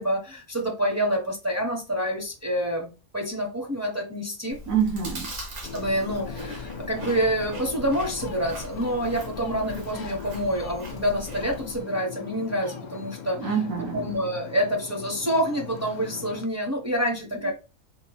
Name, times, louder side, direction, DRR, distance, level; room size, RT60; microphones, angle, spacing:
voice 1, 0.0-4.6 5.7-13.4 13.9-17.5, equal, 15° right, 0.6 m, -27 dB
Chewing mastication, 4.5-11.8, equal, 65° right, 1.3 m, -40 dB
voice 2, 4.7-5.3 13.4-14.1 17.4-17.5, right 7 dB, 85° right, 1.6 m, -26 dB
Ocean, 5.6-16.4, left 7 dB, 70° left, 0.4 m, -39 dB
3.6 x 2.0 x 4.1 m
omnidirectional pair, 1.4 m